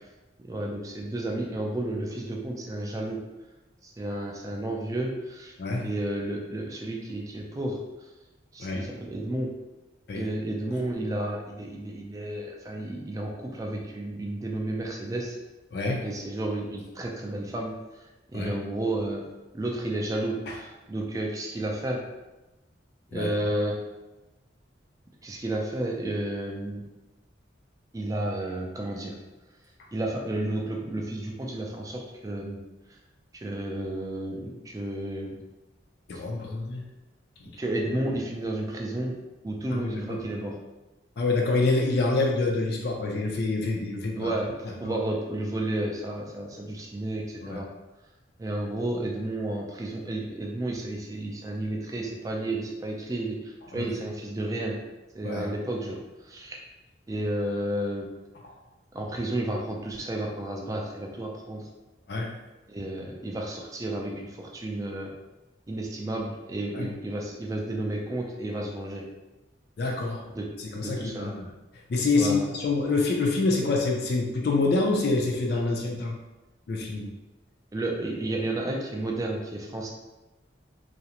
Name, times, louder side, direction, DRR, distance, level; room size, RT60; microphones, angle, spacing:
voice 1, 0.4-3.2 3.8-5.5 5.8-8.1 8.5-9.5 10.1-15.4 16.0-19.2 19.5-22.0 23.1-23.8 25.2-26.8 27.9-29.2 29.9-32.6 32.9-33.0 33.4-35.4 36.1-36.2 37.6-39.2 39.4-40.6 44.2-47.7 48.4-54.8 55.1-56.0 56.2-56.6 57.1-58.1 58.9-61.7 62.7-65.1 65.7-69.0 70.3-70.5 70.7-71.4 72.1-72.5 77.7-79.9, right 1 dB, 20° right, 0 dB, 0.3 m, -32 dB
voice 2, 15.7-16.1 18.3-18.5 20.5-20.6 23.1-23.3 36.1-36.8 37.4-37.5 39.7-40.2 41.2-44.3 44.8-45.0 47.4-47.6 53.7-53.9 55.2-55.5 62.1-62.3 66.7-66.9 69.8-70.2 70.6-71.5 71.9-76.2 76.7-77.1, left 3 dB, 60° left, 0 dB, 0.4 m, -26 dB
2.4 x 2.0 x 2.8 m, 1.1 s
head